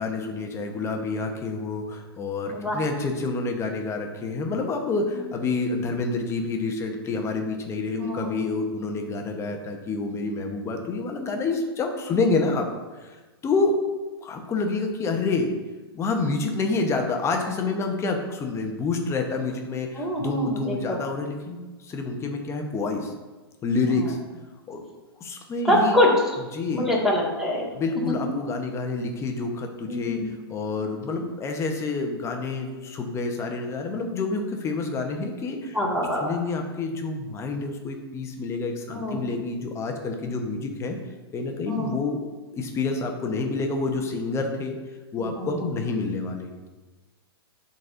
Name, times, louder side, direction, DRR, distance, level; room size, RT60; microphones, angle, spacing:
voice 1, 0.0-12.7 13.0-13.8 14.2-15.5 15.9-23.1 23.6-24.2 24.7-24.8 25.2-26.0 26.5-26.9 27.7-35.8 36.2-41.0 41.3-42.2 42.5-44.8 45.1-46.7, left 3 dB, 20° left, 3 dB, 1.0 m, -28 dB
voice 2, 8.0-8.4 19.9-21.0 23.9-24.1 25.6-26.1 26.7-27.7 28.1-28.2 29.9-30.3 35.7-36.4 38.9-39.2 41.7-41.9 45.2-45.5, left 1 dB, 5° right, -5 dB, 2.0 m, -25 dB
12.0 x 4.2 x 2.6 m, 1.2 s
hypercardioid pair, 120°, 13 cm